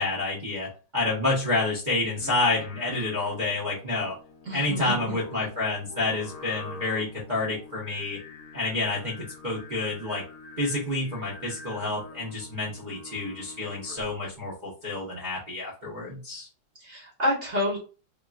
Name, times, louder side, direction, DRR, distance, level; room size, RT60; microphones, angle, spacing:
voice 1, 0.0-4.1 4.5-8.2 8.5-10.2 10.6-16.5, left 2 dB, 80° right, -8 dB, 0.4 m, -29 dB
Singing, 2.1-14.3, left 3 dB, 80° left, 0.8 m, -46 dB
voice 2, 4.5-5.5 16.8-17.8, equal, 45° right, -4 dB, 0.7 m, -29 dB
3.6 x 2.3 x 2.4 m, 0.36 s
omnidirectional pair, 2.3 m